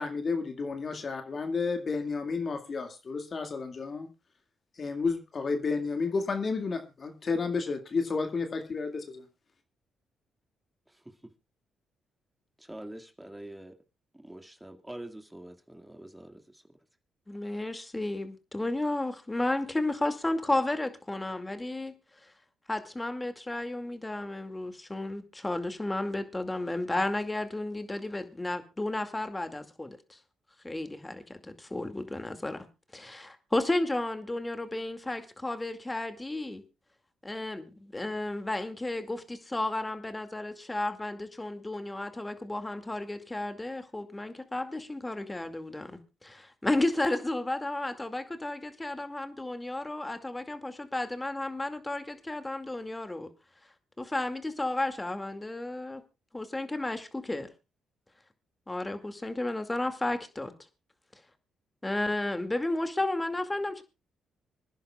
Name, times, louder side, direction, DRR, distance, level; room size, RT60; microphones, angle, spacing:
voice 1, 0.0-4.1 4.8-9.2, left 4 dB, 50° left, 2.2 m, -31 dB
voice 2, 12.6-13.7 14.1-16.6, right 1 dB, 10° right, 2.1 m, -45 dB
voice 3, 17.3-21.9 22.2-22.3 22.7-30.2 30.6-32.7 32.9-36.6 37.2-53.3 54.0-56.0 56.3-57.5 58.7-60.5 61.8-63.8, left 2 dB, 20° left, 2.3 m, -33 dB
26.0 x 10.5 x 2.4 m
hypercardioid pair, 50°, 0 cm